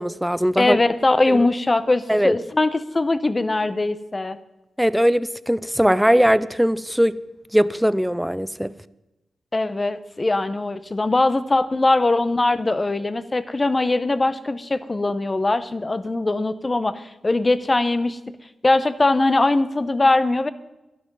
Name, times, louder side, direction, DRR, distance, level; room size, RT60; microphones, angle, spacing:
voice 1, 0.0-0.8 1.3-1.5 2.1-2.3 4.8-7.2 7.5-8.7, equal, 5° right, 17 dB, 0.5 m, -20 dB
voice 2, 0.6-4.4 9.5-18.2 18.6-20.5, left 2 dB, 25° left, 14 dB, 0.8 m, -21 dB
12.0 x 12.0 x 5.3 m, 0.98 s
cardioid pair, 85°, 0 cm